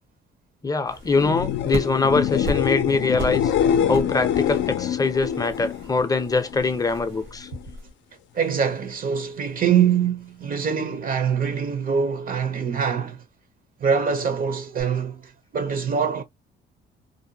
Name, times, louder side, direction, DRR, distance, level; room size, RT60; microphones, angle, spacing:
voice 1, 0.6-3.5 3.9-7.5, left 3 dB, 20° left, 0.5 m, -23 dB
sound 1, 0.9-7.9, equal, 85° right, 1.2 m, -37 dB
sound 2, 1.0-6.8 7.2-7.7 14.8-14.9, left 9 dB, 70° left, 0.5 m, -25 dB
voice 2, 8.3-13.2 13.8-16.2, right 7 dB, 45° right, 0.6 m, -24 dB
2.6 x 2.1 x 2.6 m
cardioid pair, 90°, 20 cm